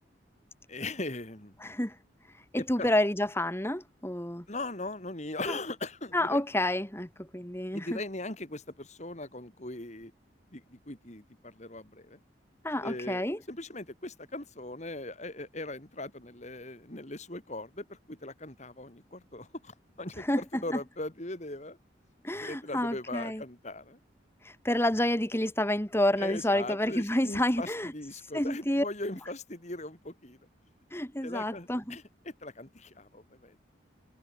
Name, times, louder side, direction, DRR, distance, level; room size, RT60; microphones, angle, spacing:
voice 1, 0.7-1.5 2.6-2.9 4.5-6.4 7.7-10.1 10.5-12.2 12.8-21.8 22.4-24.0 26.2-30.4 31.2-33.5, left 2 dB, 40° left, 3.4 m, -39 dB
voice 2, 1.6-1.9 2.5-4.4 5.5-5.6 6.1-8.0 12.6-13.4 20.2-20.8 22.2-23.4 24.4-27.9 28.3-28.9 30.9-32.0, left 1 dB, 15° left, 3.4 m, -29 dB
head